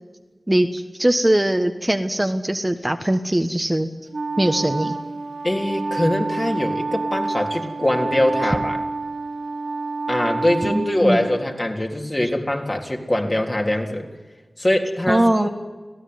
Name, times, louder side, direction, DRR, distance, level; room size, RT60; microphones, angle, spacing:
voice 1, 0.5-3.9 4.4-4.9 10.6-11.2 15.1-15.5, right 1 dB, 20° right, 6 dB, 1.4 m, -21 dB
Wind instrument woodwind instrument, 4.1-11.6, right 3 dB, 85° right, 2.8 m, -28 dB
voice 2, 5.4-8.8 10.1-14.1 14.6-15.5, left 1 dB, 30° left, 2 dB, 3.6 m, -22 dB
27.0 x 17.0 x 9.6 m, 1.3 s
wide cardioid pair, 45°, 0 cm